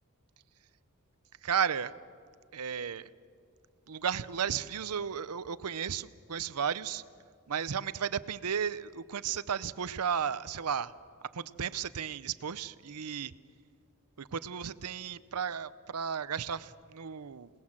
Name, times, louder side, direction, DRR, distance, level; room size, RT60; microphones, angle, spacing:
voice 1, 1.4-1.9 2.5-3.1 3.9-7.0 7.5-10.9 11.3-13.3 14.2-17.5, right 7 dB, 85° right, 16 dB, 0.7 m, -34 dB
28.0 x 19.0 x 7.4 m, 2.1 s
head